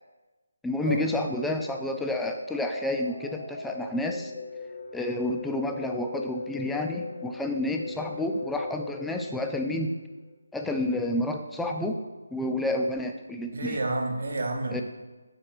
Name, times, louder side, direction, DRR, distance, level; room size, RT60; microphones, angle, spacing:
voice 1, 0.6-4.3 4.9-9.9 10.5-12.0 12.3-13.8 14.7-14.8, left 1 dB, 5° left, 3 dB, 0.3 m, -30 dB
sound 1, 2.4-10.3, left 4 dB, 40° left, 0.7 m, -40 dB
voice 2, 13.5-14.8, right 2 dB, 50° right, 3 dB, 0.9 m, -29 dB
4.9 x 4.1 x 5.9 m, 1.2 s
figure-of-eight pair, 155°, 0 cm